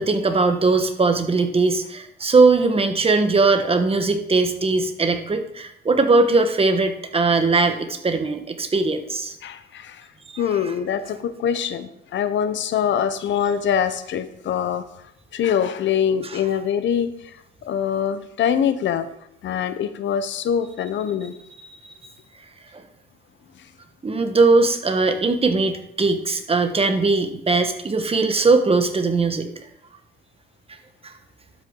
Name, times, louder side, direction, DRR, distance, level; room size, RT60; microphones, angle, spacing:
voice 1, 0.0-9.4 10.3-10.6 21.7-21.9 24.0-29.5 31.0-31.1, right 3 dB, 30° right, 6 dB, 1.4 m, -20 dB
voice 2, 9.4-10.1 10.4-14.9 15.3-17.3 17.6-19.1 19.4-21.3, left 8 dB, 70° left, 12 dB, 0.9 m, -24 dB
11.5 x 7.9 x 3.8 m, 0.78 s
cardioid pair, 90°, 20 cm